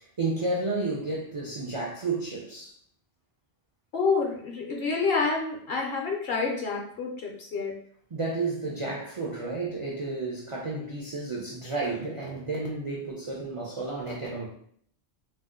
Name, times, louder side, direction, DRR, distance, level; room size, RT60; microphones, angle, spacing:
voice 1, 0.2-2.7 8.1-14.5, right 3 dB, 50° right, -3 dB, 0.3 m, -31 dB
voice 2, 3.9-7.7, left 4 dB, 60° left, -1 dB, 0.9 m, -28 dB
2.7 x 2.1 x 3.6 m, 0.63 s
omnidirectional pair, 1.2 m